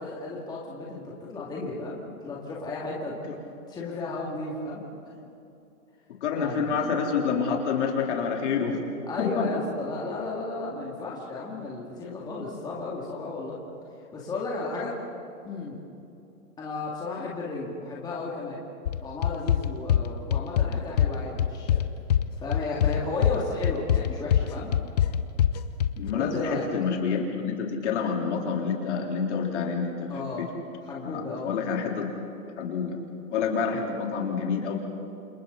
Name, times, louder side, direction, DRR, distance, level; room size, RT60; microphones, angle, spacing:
voice 1, 0.0-3.2 3.7-4.8 6.3-6.8 9.0-13.6 14.1-15.0 15.4-15.8 16.6-18.6 19.0-21.8 22.4-24.7 26.1-26.7 30.1-30.5 30.8-31.5, left 3 dB, 10° left, -4 dB, 2.5 m, -34 dB
voice 2, 6.2-8.8 9.2-9.5 26.0-30.1 30.4-30.5 31.0-32.1 32.6-33.0 33.3-34.8, left 6 dB, 50° left, 0 dB, 4.0 m, -28 dB
sound 1, 18.9-26.1, left 10 dB, 30° left, 0.6 m, -23 dB
29.0 x 27.0 x 4.1 m, 2.6 s
hypercardioid pair, 150°, 44 cm